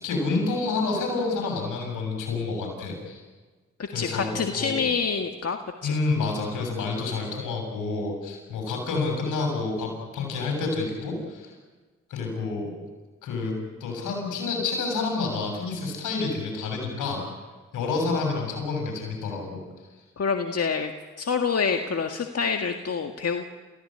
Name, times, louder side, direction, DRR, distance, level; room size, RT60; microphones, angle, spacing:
voice 1, 0.0-3.2 3.9-4.8 5.8-11.5 12.1-12.8 13.2-17.2 17.7-19.6, left 3 dB, 80° left, 2 dB, 7.3 m, -29 dB
voice 2, 3.9-5.9 20.2-20.9 21.2-23.4, left 5 dB, 50° left, 4 dB, 1.9 m, -27 dB
30.0 x 16.0 x 8.9 m, 1.4 s
hypercardioid pair, 40°, 31 cm